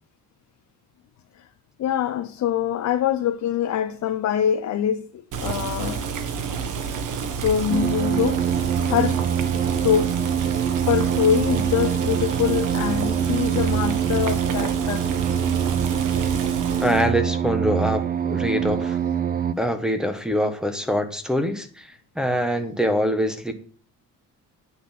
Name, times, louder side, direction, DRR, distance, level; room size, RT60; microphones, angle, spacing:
voice 1, 1.8-6.0 7.4-8.5 8.9-9.2 9.7-10.2 10.9-15.1, left 9 dB, 50° left, 0.8 m, -24 dB
Boiling, 5.3-17.1, right 6 dB, 60° right, 1.6 m, -30 dB
sound 1, 7.7-19.5, right 8 dB, 25° right, 0.5 m, -24 dB
voice 2, 16.8-19.0 19.6-23.5, equal, ahead, 1.2 m, -24 dB
9.5 x 6.1 x 7.3 m
cardioid pair, 175°, 34 cm